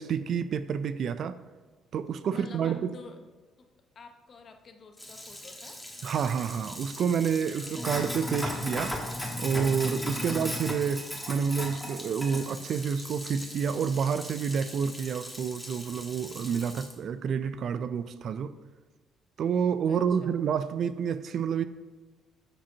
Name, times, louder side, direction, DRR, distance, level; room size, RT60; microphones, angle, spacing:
voice 1, 0.0-1.4 1.9-2.9 6.0-9.0 9.4-11.0 11.3-18.6 19.4-21.6, right 7 dB, 60° right, 12 dB, 0.3 m, -29 dB
voice 2, 2.3-3.3 3.6-3.7 3.9-5.8 10.2-10.4 19.9-20.4, left 4 dB, 50° left, 6 dB, 0.8 m, -48 dB
Sink (filling or washing), 5.0-16.9, left 1 dB, 5° left, 1.4 m, -37 dB
8.6 x 4.9 x 2.8 m, 1.3 s
hypercardioid pair, 55°, 0 cm